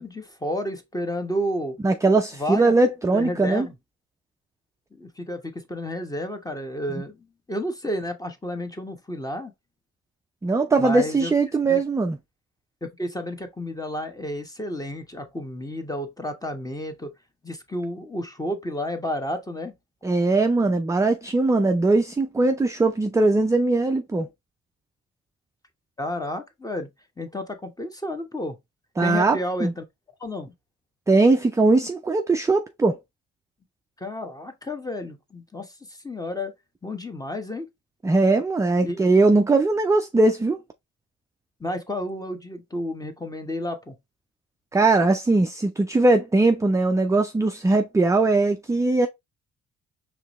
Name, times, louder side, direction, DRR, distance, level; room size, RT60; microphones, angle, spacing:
voice 1, 0.0-1.8 2.3-2.7 3.1-3.7 4.9-9.5 10.8-11.3 11.6-11.8 12.8-17.1 17.4-19.7 26.0-26.9 27.2-28.6 29.0-29.9 30.2-30.5 34.0-36.5 36.8-37.7 38.8-39.0 41.6-44.0, left 1 dB, 10° left, 1.0 m, -31 dB
voice 2, 1.8-3.7 10.4-12.2 20.0-24.3 29.0-29.7 31.1-33.0 38.0-40.6 44.7-49.1, right 3 dB, 10° right, 0.3 m, -20 dB
4.8 x 3.1 x 3.0 m
cardioid pair, 90°, 30 cm